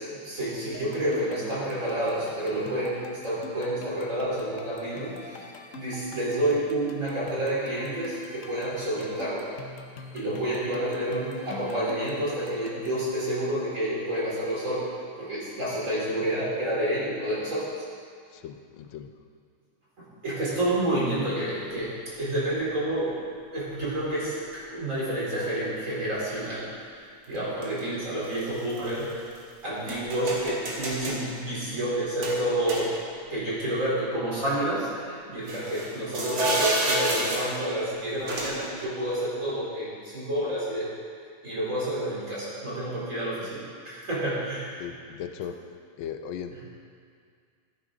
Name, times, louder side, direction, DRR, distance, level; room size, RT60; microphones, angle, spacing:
voice 1, 0.0-5.4 5.7-9.5 10.1-14.9 15.2-17.8 20.0-29.2 29.6-32.9 33.3-40.9 41.4-44.9, right 1 dB, 40° right, -8 dB, 4.1 m, -29 dB
sound 1, 0.7-13.0, left 4 dB, 55° left, 0.9 m, -44 dB
voice 2, 18.3-19.1 36.5-36.6 44.8-45.6 46.0-46.6, left 8 dB, 80° left, 7 dB, 1.4 m, -37 dB
sound 2, 21.7-21.8 22.8-22.9 23.8-24.1 27.3-27.8 28.2-29.4 29.9-31.2 32.2-33.3 33.6-33.7 35.5-37.6 38.3-38.7, right 2 dB, 80° right, 2.5 m, -30 dB
14.5 x 9.8 x 3.8 m, 2.2 s
omnidirectional pair, 2.2 m